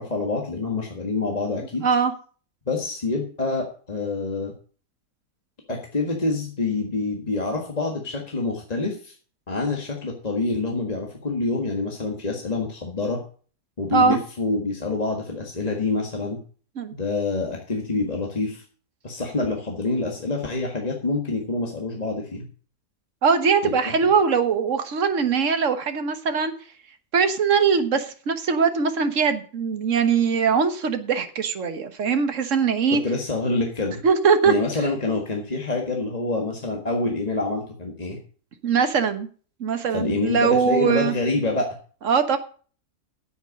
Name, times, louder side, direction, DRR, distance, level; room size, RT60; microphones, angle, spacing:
voice 1, 0.0-1.8 2.7-4.5 5.7-9.2 9.5-13.2 13.8-16.4 16.9-18.6 19.0-22.5 23.6-23.9 32.9-34.0 34.5-38.2 39.9-41.7, left 3 dB, 25° left, 1 dB, 1.7 m, -26 dB
voice 2, 1.8-2.1 13.9-14.2 16.8-16.9 23.2-26.5 27.1-33.0 34.0-34.5 38.6-39.3 39.6-41.1 42.0-42.4, right 6 dB, 55° right, 9 dB, 1.6 m, -21 dB
10.0 x 8.1 x 6.5 m, 0.41 s
omnidirectional pair, 1.6 m